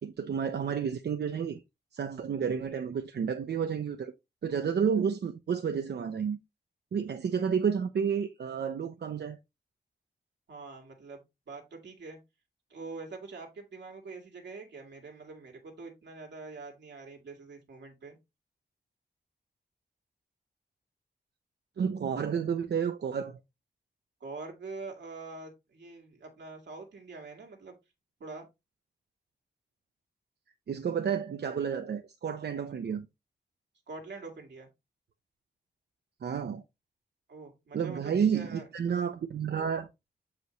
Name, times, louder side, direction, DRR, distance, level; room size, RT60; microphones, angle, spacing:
voice 1, 0.0-1.6 1.9-4.1 4.4-6.4 6.9-9.4 21.8-23.4 30.7-33.1 36.2-36.6 37.7-39.9, right 7 dB, 70° right, 0.6 m, -30 dB
voice 2, 10.5-11.2 11.5-12.2 12.7-18.2 24.2-27.8 28.2-28.5 33.9-34.7 37.3-38.6, right 3 dB, 90° right, 1.9 m, -44 dB
6.8 x 4.9 x 3.1 m
cardioid pair, 70°, 18 cm